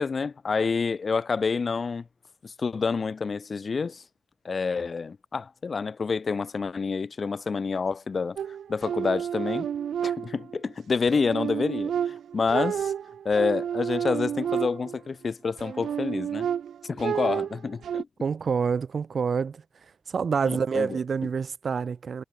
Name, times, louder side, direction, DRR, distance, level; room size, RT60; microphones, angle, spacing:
voice 1, 0.0-2.1 2.4-4.0 4.4-8.4 8.7-9.7 10.0-12.9 13.3-16.5 16.8-18.1 20.5-20.9, left 5 dB, 40° left, 3.5 m, -28 dB
sound 1, 8.4-10.7 11.1-15.1 15.6-18.0, right 8 dB, 80° right, 1.8 m, -30 dB
voice 2, 18.2-19.6 20.1-22.2, right 6 dB, 50° right, 1.9 m, -27 dB
wide cardioid pair, 130°, 0 cm